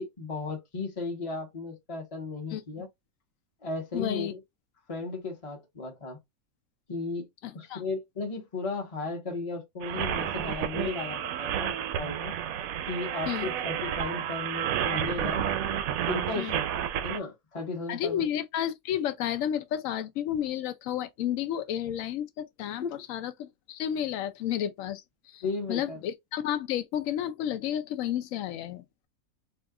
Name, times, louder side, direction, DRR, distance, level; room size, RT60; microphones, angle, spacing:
voice 1, 0.0-2.9 3.6-4.4 4.9-6.2 6.9-7.3 7.5-12.3 12.9-15.4 16.1-18.3 22.8-22.9 25.4-26.0, left 3 dB, 25° left, 0.9 m, -35 dB
voice 2, 3.9-4.3 7.4-7.8 13.3-13.5 16.3-16.6 17.9-25.4 25.7-28.8, left 10 dB, 70° left, 0.9 m, -31 dB
sound 1, 9.8-17.2, right 9 dB, 75° right, 1.0 m, -31 dB
2.7 x 2.4 x 3.5 m
omnidirectional pair, 1.6 m